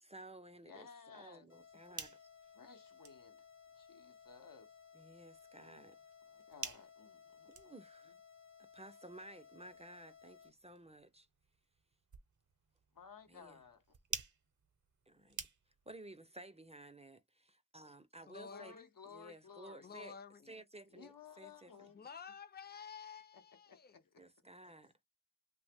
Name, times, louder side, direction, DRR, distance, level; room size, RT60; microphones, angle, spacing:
voice 1, 0.0-2.2 4.9-6.0 7.5-8.1 8.7-11.3 13.3-13.6 15.1-15.4 15.9-18.7 19.1-20.1 20.5-21.7 24.2-24.9, right 1 dB, 20° right, 0.5 m, -55 dB
voice 2, 0.6-1.5 2.5-3.4 3.7-4.7 6.3-7.8 8.0-8.2 12.9-13.8 18.4-20.0 20.9-22.1 23.3-23.4 23.7-24.2, left 6 dB, 80° left, 0.8 m, -57 dB
sound 1, 1.5-10.5, left 6 dB, 55° left, 0.9 m, -60 dB
sound 2, 1.6-16.0, right 5 dB, 60° right, 0.7 m, -52 dB
voice 3, 18.3-18.9 19.8-20.6 21.9-24.0, left 6 dB, 30° left, 0.5 m, -51 dB
2.8 x 2.1 x 3.3 m
wide cardioid pair, 55°, 33 cm